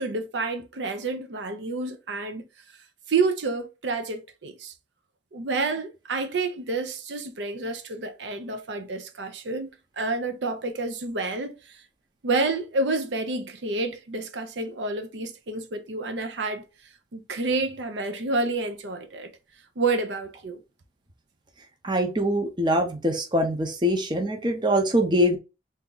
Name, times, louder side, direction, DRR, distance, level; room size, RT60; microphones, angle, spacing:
voice 1, 0.0-2.5 3.1-4.7 5.3-9.7 10.0-11.8 12.2-16.6 17.1-19.3 19.8-20.6, right 3 dB, 80° right, 0.6 m, -29 dB
voice 2, 21.8-25.4, equal, 25° right, 0.7 m, -23 dB
3.5 x 2.7 x 3.8 m
head